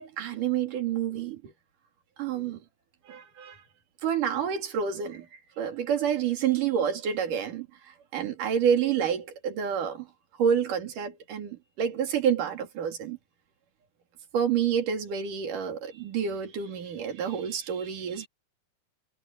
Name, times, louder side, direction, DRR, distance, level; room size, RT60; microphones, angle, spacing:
voice 1, 0.0-1.5 2.2-2.6 3.1-3.6 4.0-10.1 10.4-13.2 14.3-18.3, right 8 dB, 75° right, 4.3 m, -28 dB
omnidirectional pair, 3.7 m